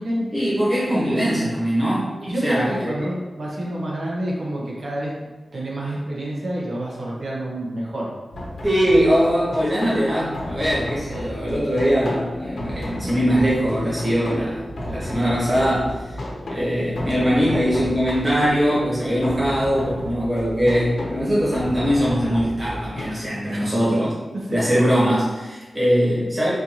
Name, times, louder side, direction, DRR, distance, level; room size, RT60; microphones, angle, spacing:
voice 1, 0.3-2.1 2.4-2.9 8.6-16.2 16.5-24.1 24.5-26.5, equal, 25° right, -7 dB, 1.5 m, -21 dB
voice 2, 2.2-5.1 5.5-8.1 14.7-14.8 23.5-23.7 24.5-24.6, right 1 dB, 60° right, -4 dB, 1.1 m, -28 dB
sound 1, 8.3-23.1, left 1 dB, 80° left, 0.9 m, -33 dB
4.4 x 2.7 x 3.0 m, 1.2 s
wide cardioid pair, 115°, 0 cm